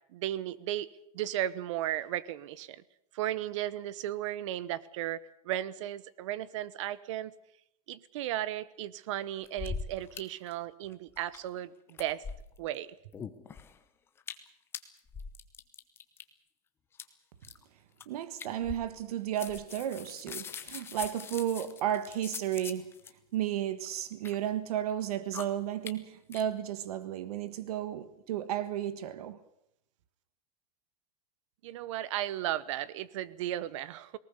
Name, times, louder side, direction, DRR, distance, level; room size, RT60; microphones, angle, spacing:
voice 1, 0.1-0.9 1.1-2.8 3.1-7.3 7.9-12.2 12.6-12.9 31.6-34.2, right 13 dB, 55° right, 1.0 m, -35 dB
sound 1, 9.4-10.2 10.5-10.6 10.8-11.6 11.9-12.7 13.1-13.8 14.2-14.5 14.7-16.2 16.9-17.0 17.4-17.6 18.0-18.1 18.4-19.1 19.4-23.1 23.9-24.3 24.9-25.0 25.3-25.4 25.9-26.0 26.3-26.4, left 6 dB, 10° left, 0.9 m, -42 dB
voice 2, 18.1-23.0 23.3-29.4, right 11 dB, 85° right, 1.5 m, -33 dB
19.5 x 19.0 x 8.3 m
supercardioid pair, 175°, 19 cm